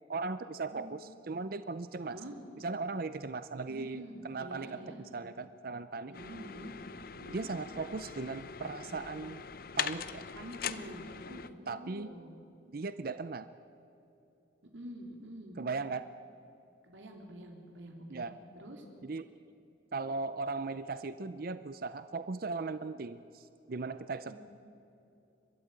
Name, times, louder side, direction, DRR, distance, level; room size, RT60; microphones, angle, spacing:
voice 1, 0.1-2.2 2.6-6.1 7.3-9.4 9.8-10.3 11.7-12.1 12.7-13.5 15.6-16.1 18.1-18.3 19.0-19.3 19.9-24.3, right 3 dB, 50° right, 13 dB, 0.5 m, -38 dB
voice 2, 3.7-5.0 6.1-6.7 7.2-7.5 10.4-12.3 14.7-15.6 16.8-18.3 18.5-18.8 24.3-24.4, right 1 dB, 80° right, 2 dB, 3.8 m, -47 dB
sound 1, 6.1-11.5, left 7 dB, 50° left, 0.7 m, -41 dB
29.5 x 13.0 x 8.9 m, 2.9 s
head